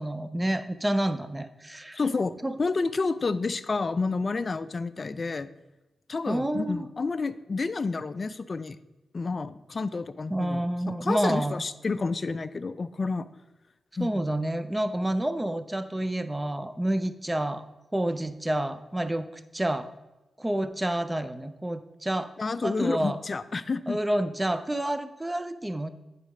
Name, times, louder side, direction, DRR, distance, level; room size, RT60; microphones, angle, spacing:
voice 1, 0.0-2.0 2.4-2.6 6.3-6.9 10.3-11.6 14.0-17.6 17.9-19.9 20.4-22.3 22.6-23.2 23.9-25.9, right 1 dB, 15° right, 12 dB, 0.5 m, -29 dB
voice 2, 1.9-5.5 6.1-8.8 9.1-13.3 14.0-14.1 22.4-24.0, left 4 dB, 45° left, 14 dB, 0.3 m, -30 dB
9.3 x 4.1 x 4.9 m, 1.0 s
cardioid pair, 70°, 0 cm